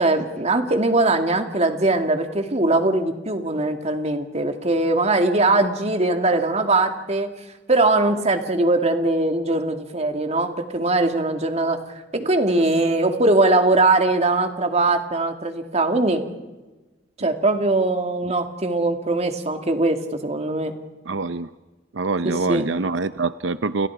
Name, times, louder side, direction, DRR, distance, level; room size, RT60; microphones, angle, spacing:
voice 1, 0.0-7.3 7.7-16.2 17.2-20.7 22.2-22.6, right 2 dB, 35° right, 5 dB, 2.4 m, -21 dB
voice 2, 21.1-21.5 21.9-23.9, right 3 dB, 80° right, 12 dB, 0.7 m, -24 dB
30.0 x 29.5 x 4.9 m, 1.2 s
head